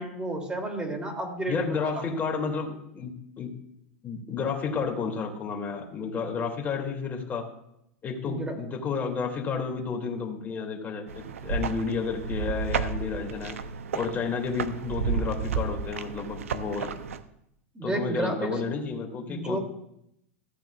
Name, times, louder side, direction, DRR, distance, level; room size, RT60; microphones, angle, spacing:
voice 1, 0.0-2.0 8.2-8.6 17.7-18.6 19.3-19.6, right 2 dB, 15° right, 3 dB, 2.7 m, -31 dB
voice 2, 1.5-3.5 4.0-7.5 8.0-13.6 13.9-16.9 17.8-19.6, left 5 dB, 25° left, 0 dB, 2.5 m, -31 dB
sound 1, 11.1-17.2, right 6 dB, 85° right, 0.7 m, -32 dB
15.0 x 8.8 x 2.4 m, 0.77 s
hypercardioid pair, 105°, 7 cm